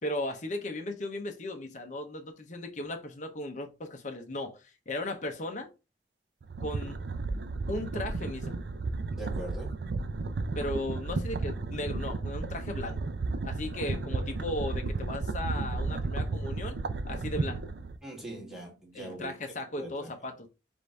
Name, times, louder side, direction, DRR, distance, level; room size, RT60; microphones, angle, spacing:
voice 1, 0.0-4.6 4.9-5.7 6.6-7.0 7.7-8.6 10.6-13.0 13.4-16.8 17.1-17.6 18.9-20.5, left 1 dB, 45° left, 0.8 m, -36 dB
sound 1, 6.4-18.0, right 3 dB, 65° right, 0.5 m, -33 dB
voice 2, 9.1-9.8 13.9-14.3 18.0-20.1, right 2 dB, 5° right, 1.5 m, -43 dB
5.0 x 2.6 x 3.3 m
head